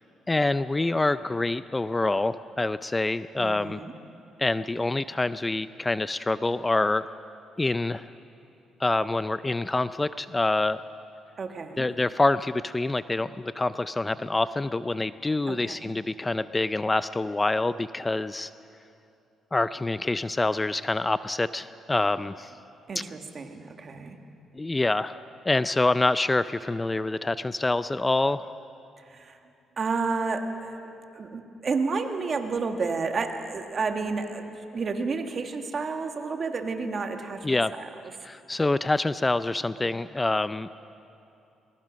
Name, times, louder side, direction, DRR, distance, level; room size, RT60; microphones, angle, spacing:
voice 1, 0.3-3.8 4.4-7.1 7.6-8.1 8.8-10.8 11.8-18.5 19.5-22.5 23.0-23.1 24.5-25.2 25.5-28.5 37.4-37.7 38.2-40.7, left 2 dB, 20° left, 14 dB, 0.4 m, -26 dB
voice 2, 3.4-3.9 11.4-11.9 15.5-15.9 22.9-24.2 29.1-29.4 29.8-30.8 31.1-37.9, right 4 dB, 45° right, 5 dB, 1.7 m, -31 dB
21.5 x 21.0 x 6.3 m, 2.7 s
cardioid pair, 90°, 0 cm